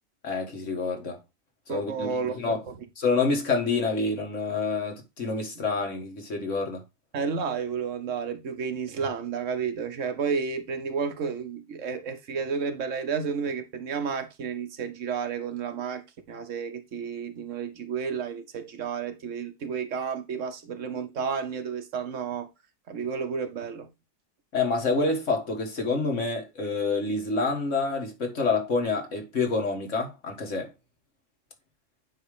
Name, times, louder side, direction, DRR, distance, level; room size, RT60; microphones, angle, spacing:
voice 1, 0.2-1.2 1.7-2.6 3.0-6.8 24.5-30.7, left 3 dB, 75° left, 2.1 m, -27 dB
voice 2, 1.7-2.3 2.7-2.8 7.1-22.5 22.9-23.9, right 6 dB, 75° right, 1.3 m, -31 dB
9.3 x 3.2 x 4.9 m
omnidirectional pair, 1.3 m